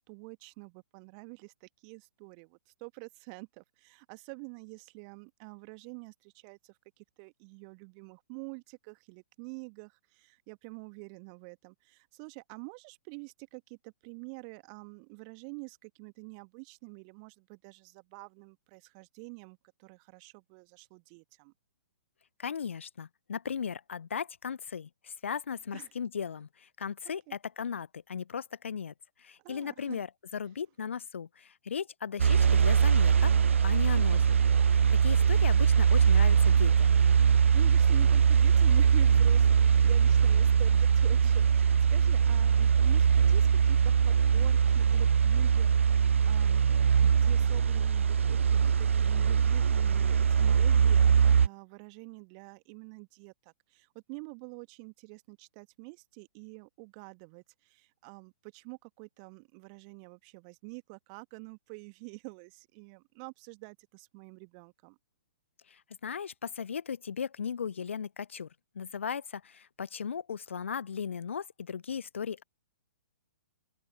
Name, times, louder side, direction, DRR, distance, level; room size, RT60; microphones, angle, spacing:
voice 1, 0.1-21.5 25.7-25.9 27.3-27.4 29.4-30.0 34.0-34.3 37.5-65.0, right 38 dB, 30° right, 1.6 m, -47 dB
voice 2, 22.4-30.1 30.3-33.3 33.6-34.2 34.7-37.0 65.7-68.5 68.7-72.4, left 7 dB, 60° left, 1.0 m, -37 dB
sound 1, 32.2-51.5, right 7 dB, 60° right, 0.4 m, -22 dB
open air
figure-of-eight pair, 120°, 8 cm